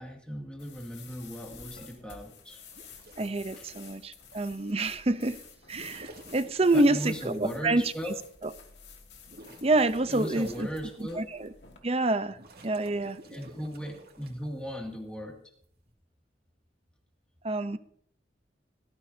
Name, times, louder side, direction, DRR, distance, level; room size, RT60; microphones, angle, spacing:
voice 1, 0.0-2.6 3.6-3.7 6.7-8.1 10.1-11.3 13.3-15.4, equal, 5° left, 0 dB, 2.4 m, -37 dB
sound 1, 0.6-11.8, left 6 dB, 75° left, 2.4 m, -51 dB
sound 2, 2.7-4.5 5.5-7.7 8.2-8.3 8.8-11.3 11.8-14.5 15.6-15.9, right 1 dB, 60° right, 2.4 m, -51 dB
voice 2, 3.2-5.4 5.7-7.8 8.4-8.5 9.6-10.7 11.2-11.5 11.8-12.4 12.6-13.2 17.4-17.8, right 2 dB, 35° right, 12 dB, 0.7 m, -27 dB
18.0 x 14.0 x 2.8 m, 0.63 s
head